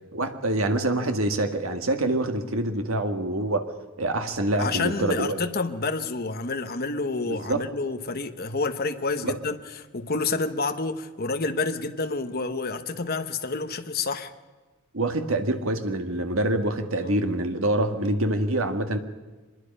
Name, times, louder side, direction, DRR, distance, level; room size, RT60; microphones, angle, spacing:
voice 1, 0.1-3.6 4.0-5.4 7.3-7.6 9.2-9.4 14.9-19.0, right 1 dB, 65° right, 1.9 m, -26 dB
voice 2, 4.6-9.6 9.9-14.3 17.0-17.2, left 3 dB, 45° left, 1.2 m, -29 dB
24.5 x 21.5 x 5.5 m
head